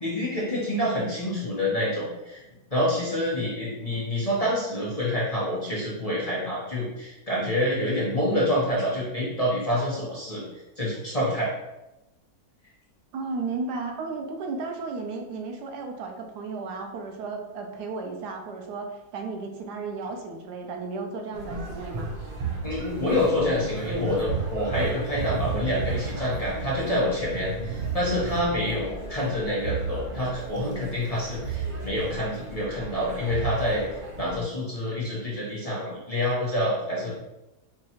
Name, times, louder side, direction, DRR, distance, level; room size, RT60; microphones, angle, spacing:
voice 1, 0.0-2.4 2.7-10.4 10.8-11.5 22.6-37.1, left 1 dB, 30° left, -7 dB, 0.8 m, -27 dB
voice 2, 13.1-22.1, right 4 dB, 85° right, 3 dB, 1.2 m, -34 dB
sound 1, 21.3-34.4, right 4 dB, 50° right, 0.7 m, -33 dB
4.7 x 3.1 x 2.8 m, 0.95 s
omnidirectional pair, 1.7 m